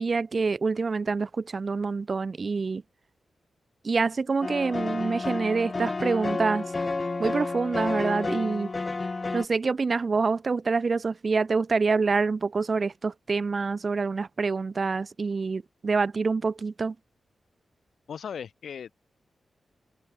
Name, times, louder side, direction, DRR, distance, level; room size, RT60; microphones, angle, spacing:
voice 1, 0.0-2.8 3.8-6.7 7.2-8.7 9.3-16.9, right 4 dB, 35° right, 2.9 m, -26 dB
sound 1, 4.4-9.5, left 3 dB, 25° left, 2.8 m, -30 dB
voice 2, 18.1-18.9, left 7 dB, 80° left, 5.1 m, -37 dB
wide cardioid pair, 165°, 0 cm